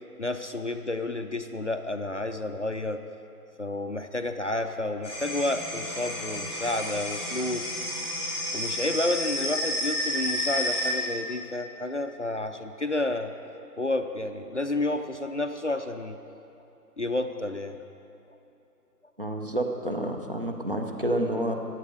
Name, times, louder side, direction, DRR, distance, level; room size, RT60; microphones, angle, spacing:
voice 1, 0.2-3.0 3.6-7.7 8.5-13.3 13.8-16.2 17.0-17.8, left 2 dB, 50° left, 7 dB, 0.5 m, -30 dB
sound 1, 5.0-10.9, equal, ahead, 2.5 m, -31 dB
voice 2, 19.2-21.5, right 1 dB, 35° right, 3 dB, 0.8 m, -29 dB
16.0 x 10.5 x 5.0 m, 3.0 s
figure-of-eight pair, 175°, 48 cm